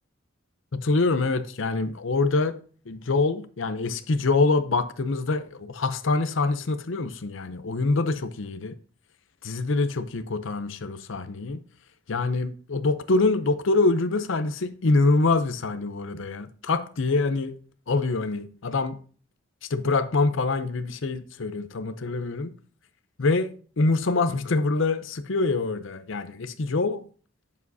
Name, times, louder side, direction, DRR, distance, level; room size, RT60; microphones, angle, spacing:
voice 1, 0.7-2.6 2.9-8.8 9.4-11.6 12.1-17.5 17.9-19.0 19.7-22.5 23.2-27.0, left 3 dB, 65° left, 0.7 m, -25 dB
8.2 x 7.1 x 2.7 m
head